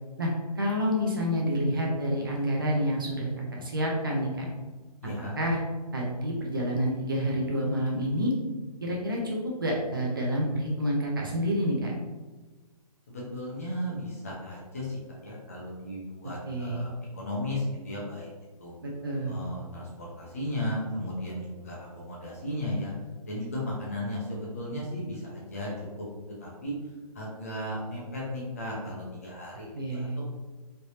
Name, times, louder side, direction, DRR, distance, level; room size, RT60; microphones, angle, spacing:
voice 1, 0.2-4.5 5.4-5.6 5.9-8.3 8.8-11.9 16.5-16.8 18.8-19.3 29.7-30.2, equal, 35° right, -2 dB, 0.5 m, -28 dB
voice 2, 5.0-5.4 13.1-18.3 18.6-18.7 19.2-22.9 23.3-25.9 26.4-26.7 27.1-30.5, left 1 dB, 25° left, -5 dB, 0.6 m, -35 dB
3.2 x 2.9 x 2.7 m, 1.3 s
hypercardioid pair, 175°, 20 cm